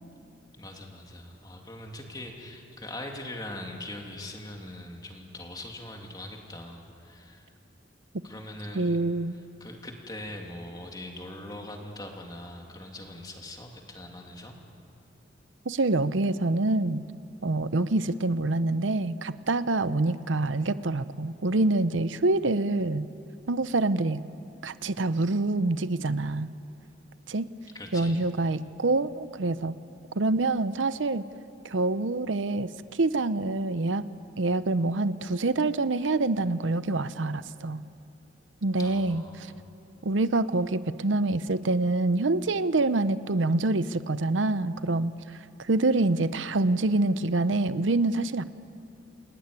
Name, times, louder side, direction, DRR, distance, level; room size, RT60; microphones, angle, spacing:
voice 1, 0.5-7.5 8.2-9.0 9.6-14.6 27.7-28.3 38.8-39.6, left 1 dB, 20° left, 1 dB, 2.9 m, -41 dB
voice 2, 8.7-9.3 15.7-17.0 17.4-23.1 23.5-24.2 24.6-26.5 27.3-27.5 27.9-29.7 30.2-31.2 31.6-34.0 34.4-37.8 38.6-39.5 40.0-45.1 45.6-48.4, right 2 dB, 90° right, 14 dB, 0.8 m, -26 dB
28.5 x 19.5 x 9.8 m, 2.7 s
head